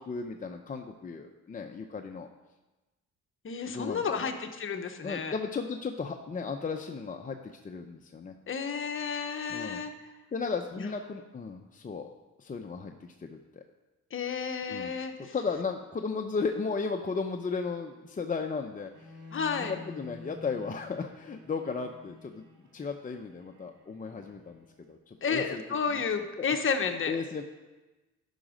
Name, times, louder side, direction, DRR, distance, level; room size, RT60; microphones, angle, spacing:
voice 1, 0.0-2.3 3.7-4.3 5.0-7.4 7.6-8.3 9.5-9.8 10.3-12.1 12.4-13.6 14.7-14.9 15.2-19.2 19.6-22.5 22.7-25.6 25.9-26.0 27.1-27.4, left 4 dB, 25° left, 3 dB, 0.8 m, -35 dB
voice 2, 3.4-5.3 8.5-9.9 10.7-10.9 14.1-15.3 19.3-19.7 25.2-27.2, left 5 dB, 45° left, 5 dB, 1.2 m, -31 dB
Bowed string instrument, 18.9-25.0, left 3 dB, 75° right, 1.8 m, -50 dB
13.0 x 6.0 x 5.2 m, 1.1 s
cardioid pair, 90°, 30 cm